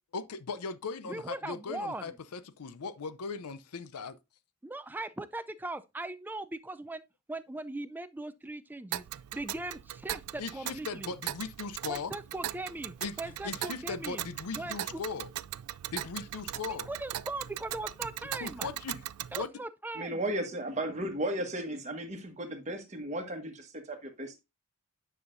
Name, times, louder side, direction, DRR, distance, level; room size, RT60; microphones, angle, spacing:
voice 1, 0.1-4.2 10.4-12.1 13.0-15.3 15.9-16.9 18.4-19.0 19.3-19.5, left 4 dB, 85° left, 0.6 m, -38 dB
voice 2, 1.1-2.1 4.6-7.0 7.3-9.1 9.3-11.1 11.9-14.2 14.6-15.0 16.7-18.7 19.3-20.2, right 2 dB, 10° right, 0.3 m, -39 dB
Tick, 8.9-19.5, right 13 dB, 90° right, 0.3 m, -39 dB
voice 3, 19.9-24.4, right 1 dB, 30° right, 1.4 m, -35 dB
9.6 x 5.7 x 2.6 m
head